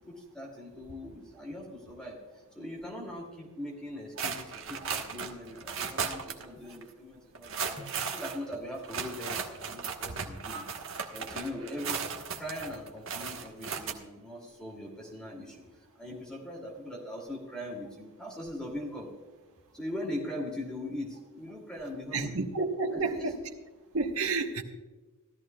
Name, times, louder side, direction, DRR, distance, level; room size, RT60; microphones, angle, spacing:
voice 1, 0.0-10.7 11.1-12.0 12.3-19.1 19.7-22.4 22.8-23.3, left 1 dB, 5° left, 2.6 m, -41 dB
Searching in toolbox, 4.2-6.4 6.7-6.8 7.3-13.9, right 6 dB, 65° right, 1.3 m, -36 dB
voice 2, 22.1-23.3 23.9-24.6, right 3 dB, 85° right, 1.3 m, -30 dB
16.5 x 13.5 x 2.3 m
head